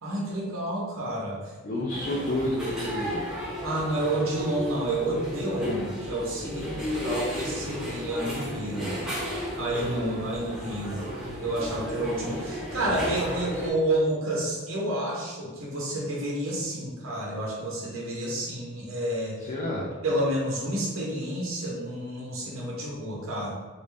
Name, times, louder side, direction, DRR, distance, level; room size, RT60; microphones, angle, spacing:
voice 1, 0.0-1.8 3.6-9.0 9.6-11.0 11.4-19.4 20.0-23.5, right 1 dB, 65° right, -3 dB, 0.8 m, -30 dB
voice 2, 1.6-3.5 19.4-19.9, left 1 dB, 40° left, -4 dB, 0.5 m, -30 dB
sound 1, 1.9-13.7, equal, 5° right, 0.8 m, -34 dB
3.2 x 2.6 x 3.3 m, 1.3 s
head